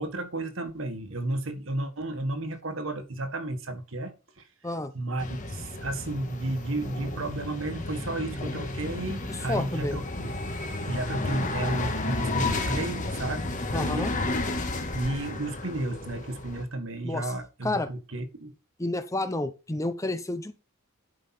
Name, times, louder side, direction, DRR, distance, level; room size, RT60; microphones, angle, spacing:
voice 1, 0.0-4.5 4.9-10.4 10.9-14.1 14.9-18.5, right 2 dB, 70° right, 1.6 m, -33 dB
sound 1, 5.2-16.6, left 2 dB, 35° left, 1.6 m, -32 dB
voice 2, 9.3-10.0 13.7-14.1 17.0-17.3 17.6-17.9 18.8-20.5, left 2 dB, 15° left, 0.7 m, -30 dB
11.0 x 5.6 x 4.3 m
head